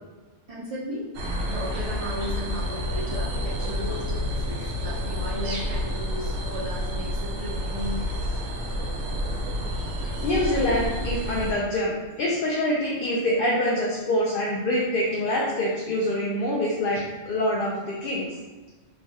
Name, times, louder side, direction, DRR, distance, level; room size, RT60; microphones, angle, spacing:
voice 1, 0.5-1.0 1.5-8.0, equal, 45° right, -8 dB, 0.4 m, -35 dB
sound 1, 1.1-11.5, equal, 80° right, 0.9 m, -29 dB
voice 2, 10.2-18.3, left 1 dB, 60° left, -4 dB, 0.6 m, -25 dB
3.2 x 2.2 x 2.6 m, 1.3 s
omnidirectional pair, 1.2 m